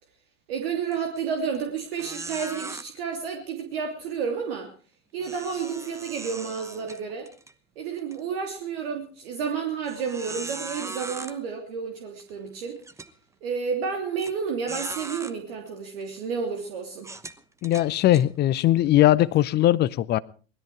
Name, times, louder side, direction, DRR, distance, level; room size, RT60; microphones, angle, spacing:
voice 1, 0.5-4.7 5.1-7.3 7.8-12.8 13.4-17.1, right 6 dB, 60° right, 4 dB, 3.1 m, -31 dB
sound 1, 0.9-1.2 1.5-1.6 2.0-2.8 5.2-7.5 8.0-8.2 8.8-8.9 9.9-11.3 12.2-12.3 12.8-13.1 14.2-14.3 14.7-15.3 16.0-16.2 17.0-18.3, right 3 dB, 10° right, 1.0 m, -38 dB
voice 2, 17.6-20.2, left 14 dB, 30° left, 20 dB, 0.7 m, -20 dB
20.0 x 13.0 x 4.9 m, 0.38 s
figure-of-eight pair, 85°, 34 cm